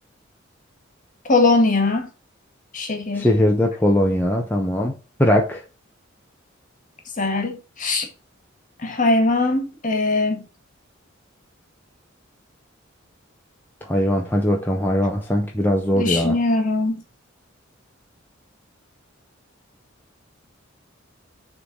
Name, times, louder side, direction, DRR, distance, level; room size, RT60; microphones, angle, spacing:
voice 1, 1.3-2.1 2.7-3.3 7.2-8.1 8.8-10.4 15.9-16.9, left 2 dB, 40° left, 1.8 m, -20 dB
voice 2, 3.2-5.6 13.8-16.4, left 1 dB, 10° left, 0.9 m, -20 dB
6.6 x 3.9 x 6.3 m
head